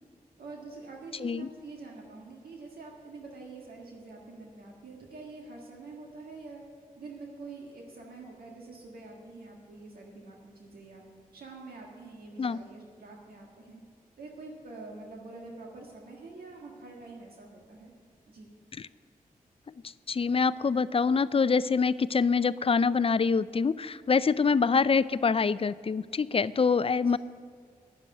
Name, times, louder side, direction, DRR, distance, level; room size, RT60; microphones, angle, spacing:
voice 1, 0.4-6.6 7.0-11.0 11.3-13.8 14.2-17.9 18.3-18.5 27.0-27.2, right 3 dB, 85° right, -1 dB, 1.6 m, -46 dB
voice 2, 20.1-27.2, left 5 dB, 40° left, 17 dB, 0.4 m, -25 dB
10.0 x 7.6 x 8.4 m, 2.1 s
cardioid pair, 45°, 15 cm